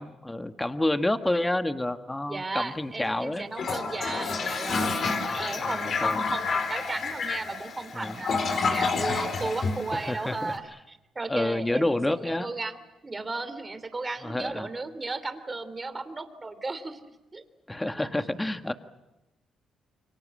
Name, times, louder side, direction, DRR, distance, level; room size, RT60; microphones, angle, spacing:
voice 1, 0.0-3.5 5.6-6.2 7.9-8.2 9.9-10.6 11.3-12.5 14.2-14.7 17.7-18.7, left 1 dB, 10° left, 8 dB, 1.5 m, -29 dB
voice 2, 2.3-12.0 12.4-12.8 13.0-17.0 17.3-17.4 18.0-18.1, right 3 dB, 25° right, 11 dB, 3.1 m, -35 dB
Toilet flush, 3.5-10.5, left 4 dB, 55° left, 4.4 m, -29 dB
29.0 x 24.0 x 7.7 m, 0.97 s
cardioid pair, 90°, 0 cm